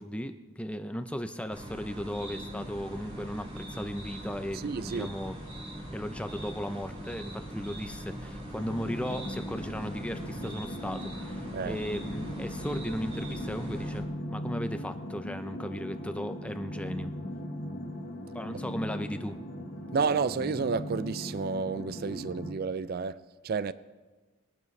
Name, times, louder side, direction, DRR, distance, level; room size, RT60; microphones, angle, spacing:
voice 1, 0.0-5.4 5.9-17.1 18.3-19.4, equal, 5° left, 0.5 m, -36 dB
sound 1, 1.5-14.0, equal, 30° right, 3.6 m, -41 dB
voice 2, 4.6-5.1 11.5-11.8 18.5-18.6 19.9-23.7, right 5 dB, 45° right, 0.4 m, -31 dB
sound 2, 8.6-22.5, equal, 50° left, 1.3 m, -39 dB
21.0 x 12.0 x 3.2 m
head